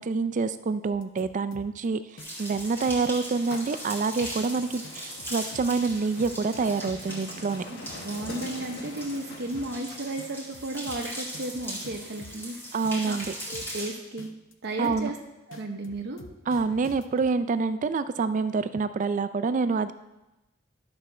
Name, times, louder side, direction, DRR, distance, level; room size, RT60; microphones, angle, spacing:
voice 1, 0.0-2.0 2.4-7.6 12.7-13.3 14.8-15.1 16.5-19.9, right 4 dB, 40° right, 12 dB, 0.4 m, -27 dB
sound 1, 0.9-1.9 2.2-3.2 3.5-3.9 4.2-4.5 4.8-7.2 7.5-8.5 8.8-9.2 9.5-9.9 10.2-12.5 12.8-13.9 14.2-14.5 14.8-15.2 15.5-17.3, left 2 dB, 75° left, 0.7 m, -47 dB
sound 2, 2.2-13.9, equal, 10° left, 2.3 m, -39 dB
sound 3, 2.6-10.3, left 2 dB, 60° left, 1.2 m, -45 dB
voice 2, 7.7-12.6 13.1-13.2 13.5-14.3 14.6-15.2 15.5-16.2, right 2 dB, 60° right, 2 dB, 0.9 m, -34 dB
11.5 x 4.3 x 6.1 m, 0.98 s
head